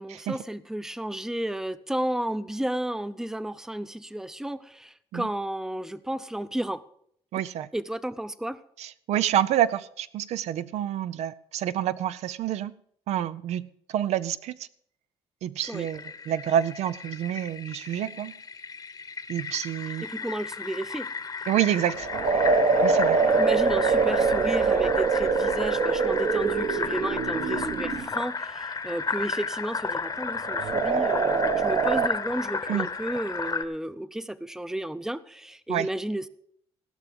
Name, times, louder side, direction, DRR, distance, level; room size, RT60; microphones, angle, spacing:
voice 1, 0.0-6.8 7.7-8.6 15.7-15.9 20.0-21.1 23.3-36.3, right 1 dB, 5° right, 0.6 m, -32 dB
voice 2, 7.3-7.7 8.8-12.7 13.1-14.7 15.4-18.3 19.3-20.1 21.5-22.1 22.8-23.2 32.7-32.9 35.7-35.9, right 11 dB, 85° right, 0.5 m, -28 dB
Fill (with liquid), 15.6-33.6, left 4 dB, 35° left, 1.0 m, -33 dB
sound 1, 21.9-28.1 30.4-32.1, right 4 dB, 65° right, 1.2 m, -24 dB
16.5 x 6.0 x 6.9 m
cardioid pair, 90°, 11 cm